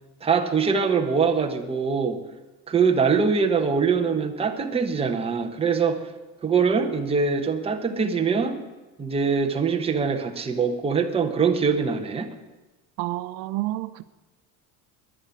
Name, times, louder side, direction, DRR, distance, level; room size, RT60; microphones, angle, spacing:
voice 1, 0.2-2.2 2.7-6.1 6.4-8.6 9.0-12.3, right 5 dB, 15° right, 1.2 m, -23 dB
voice 2, 13.0-14.0, right 16 dB, 85° right, 0.8 m, -29 dB
11.0 x 10.5 x 9.7 m
cardioid pair, 160°, 36 cm